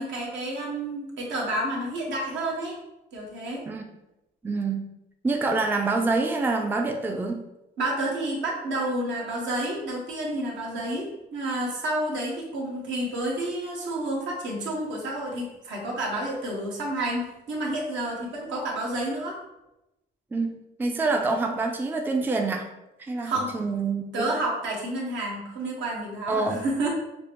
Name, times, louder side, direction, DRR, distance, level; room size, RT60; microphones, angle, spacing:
voice 1, 0.0-2.8 3.1-3.6 7.8-19.4 23.2-23.5 24.1-26.9, right 1 dB, 75° right, -3 dB, 1.2 m, -30 dB
voice 2, 4.4-4.9 5.2-7.4 20.3-22.7 23.0-24.3 26.3-26.6, right 3 dB, 10° right, 3 dB, 0.4 m, -26 dB
5.1 x 2.1 x 2.9 m, 0.92 s
cardioid pair, 90°, 20 cm